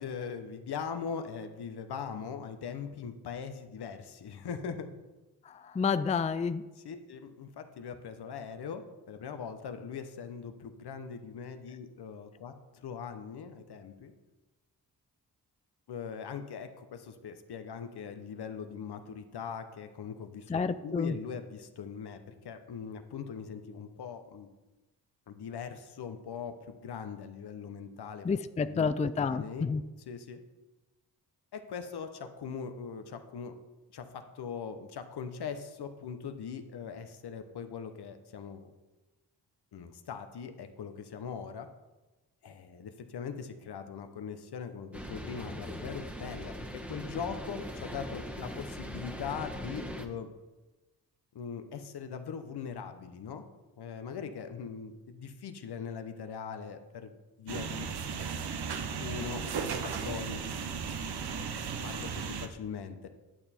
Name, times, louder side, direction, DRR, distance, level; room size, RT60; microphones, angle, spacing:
voice 1, 0.0-4.9 6.8-14.1 15.9-20.5 20.8-24.5 25.3-28.3 28.6-29.6 30.1-30.4 31.5-33.6 33.9-38.7 39.7-41.7 42.4-50.3 51.3-53.4 53.8-57.9 59.0-60.4 61.2-61.5 61.8-63.1, left 6 dB, 65° left, 8 dB, 1.1 m, -41 dB
voice 2, 5.5-6.6 20.5-21.2 28.2-29.8, left 5 dB, 20° left, 12 dB, 0.4 m, -30 dB
sound 1, 44.9-50.1, equal, 5° right, 1.4 m, -41 dB
sound 2, 57.5-62.5, right 6 dB, 65° right, 1.0 m, -35 dB
10.5 x 6.7 x 4.4 m, 1.1 s
supercardioid pair, 45°, 41 cm